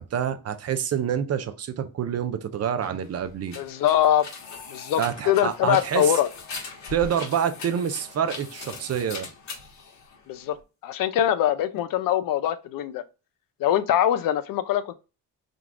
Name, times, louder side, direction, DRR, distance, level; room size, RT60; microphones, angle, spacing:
voice 1, 0.0-3.6 5.0-6.1 6.9-9.3, right 8 dB, 50° right, 0.6 m, -27 dB
sound 1, 2.7-10.6, left 4 dB, 55° left, 1.4 m, -41 dB
voice 2, 3.6-4.3 4.7-6.3 10.3-10.6 10.8-13.0 13.6-14.9, left 11 dB, 75° left, 0.6 m, -23 dB
3.8 x 2.4 x 4.6 m
cardioid pair, 105°, 33 cm